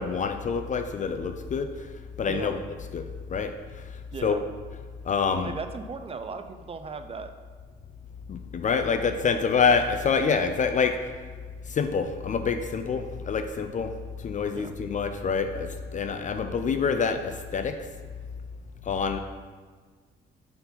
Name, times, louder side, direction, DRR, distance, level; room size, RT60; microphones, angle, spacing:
voice 1, 0.0-1.7 2.2-2.6 2.9-3.0 3.3-3.5 4.2-4.4 5.1-5.5 8.3-11.0 11.7-13.9 14.2-17.8 18.9-19.2, left 5 dB, 40° left, 7 dB, 0.4 m, -26 dB
voice 2, 2.3-2.6 4.1-4.4 5.4-7.3 14.5-14.7, right 5 dB, 30° right, 8 dB, 0.4 m, -37 dB
4.4 x 3.9 x 5.5 m, 1.5 s
cardioid pair, 90°, 20 cm